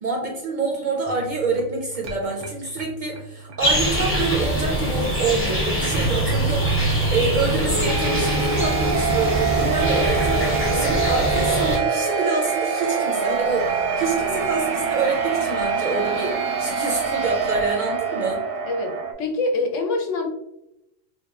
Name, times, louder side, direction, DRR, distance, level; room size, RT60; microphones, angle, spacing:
voice 1, 0.0-16.3 16.6-18.4, right 3 dB, 55° right, -1 dB, 0.5 m, -26 dB
sound 1, 1.1-19.1, right 5 dB, 80° right, 1.0 m, -26 dB
sound 2, 3.6-11.8, right 1 dB, 15° left, 0.5 m, -24 dB
voice 2, 18.7-20.3, left 3 dB, 80° left, 3 dB, 0.9 m, -25 dB
3.4 x 2.9 x 2.3 m, 0.86 s
omnidirectional pair, 1.3 m